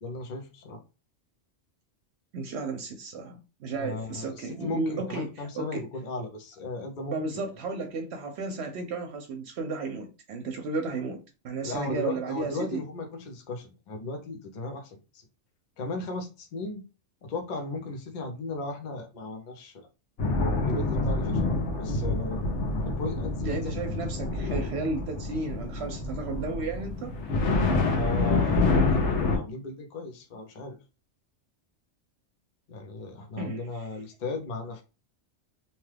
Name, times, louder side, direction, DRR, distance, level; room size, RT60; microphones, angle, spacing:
voice 1, 0.0-0.8 3.8-7.4 11.6-15.2 15.8-16.8 17.2-19.9 20.6-22.4 22.8-23.8 24.5-24.6 27.9-30.8 32.7-34.8, left 2 dB, 45° left, 0.7 m, -36 dB
voice 2, 2.3-5.9 7.1-12.8 23.4-27.1 33.4-33.7, right 3 dB, 70° right, 0.8 m, -33 dB
sound 1, 20.2-29.4, left 3 dB, 80° left, 1.0 m, -27 dB
2.9 x 2.2 x 3.2 m
omnidirectional pair, 1.2 m